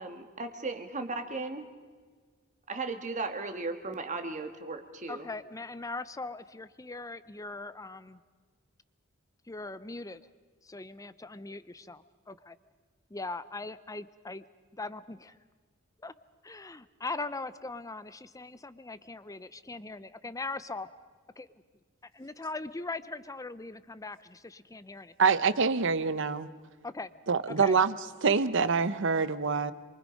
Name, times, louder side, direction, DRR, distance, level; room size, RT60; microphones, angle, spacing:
voice 1, 0.0-1.6 2.7-5.3, right 3 dB, 35° right, 6 dB, 1.8 m, -36 dB
voice 2, 5.1-8.2 9.5-10.2 10.6-12.6 13.1-14.4 14.7-15.4 16.0-16.1 16.4-20.9 21.4-21.5 22.1-25.3 26.8-27.1 27.5-27.8, left 3 dB, 15° left, 14 dB, 0.6 m, -40 dB
voice 3, 25.2-26.5 27.3-28.0 28.2-29.7, right 5 dB, 65° right, 14 dB, 0.9 m, -25 dB
27.0 x 24.0 x 5.3 m, 1.5 s
head